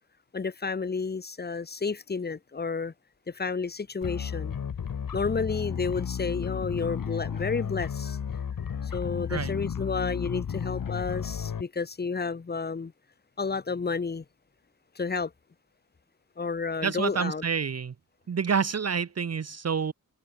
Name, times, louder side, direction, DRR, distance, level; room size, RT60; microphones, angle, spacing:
voice 1, 0.3-2.9 3.3-4.6 5.1-8.2 8.6-12.9 13.4-14.2 15.0-15.3 16.4-17.4, left 4 dB, 30° left, 1.0 m, -31 dB
sound 1, 4.0-11.6, left 7 dB, 85° left, 2.3 m, -33 dB
voice 2, 16.8-17.9 18.3-19.9, right 6 dB, 50° right, 1.0 m, -28 dB
wide cardioid pair, 120°, 32 cm